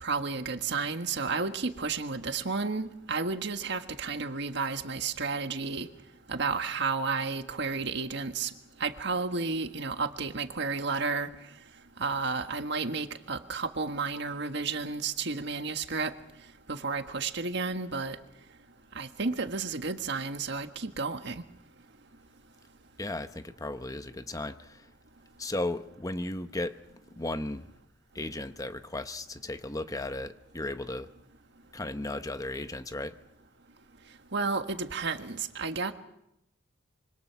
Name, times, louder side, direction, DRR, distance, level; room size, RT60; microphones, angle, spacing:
voice 1, 0.0-5.9 6.3-8.5 8.8-11.3 12.0-16.1 16.7-18.2 18.9-21.4 34.3-35.9, right 4 dB, 65° right, 7 dB, 1.6 m, -32 dB
voice 2, 23.0-24.9 25.4-26.7 27.2-27.7 28.1-31.1 31.7-33.2, left 2 dB, 20° left, 10 dB, 0.9 m, -35 dB
26.0 x 25.0 x 5.9 m, 0.81 s
head